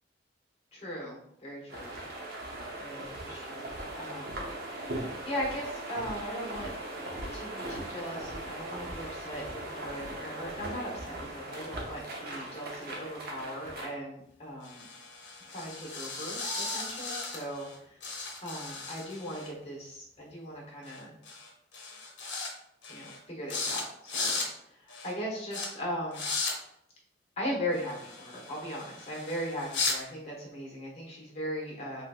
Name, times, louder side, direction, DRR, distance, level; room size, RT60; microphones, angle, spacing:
voice 1, 0.7-2.0 2.8-4.4 4.9-6.7 7.3-14.8 15.5-18.0 18.4-21.1 22.9-26.3 27.4-32.1, equal, 35° left, -2 dB, 1.0 m, -38 dB
sound 1, 1.7-13.9, right 1 dB, 55° right, 0.7 m, -39 dB
sound 2, 14.6-17.7 18.0-19.5 20.8-21.0 21.2-21.5 21.7-22.5 22.8-23.2 23.5-23.8 24.1-24.5 24.9-25.1 25.5-25.7 26.1-26.5 27.7-30.0, left 3 dB, 70° left, 0.8 m, -36 dB
3.4 x 2.9 x 2.4 m, 0.75 s
head